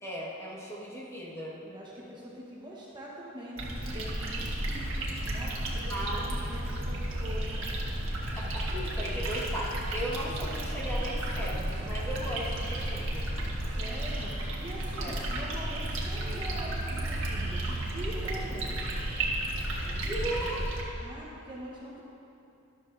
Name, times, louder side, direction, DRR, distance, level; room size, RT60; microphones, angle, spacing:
voice 1, 0.0-1.6 5.9-6.4 8.3-13.3 15.0-15.2 19.8-20.6, right 1 dB, 15° left, -5 dB, 1.7 m, -37 dB
voice 2, 1.6-5.9 6.5-7.7 13.7-14.3 14.6-19.0 21.0-22.0, right 1 dB, 20° right, -5 dB, 1.2 m, -43 dB
sound 1, 3.6-20.8, right 1 dB, 70° right, 1.7 m, -33 dB
13.0 x 12.0 x 2.7 m, 2.9 s
head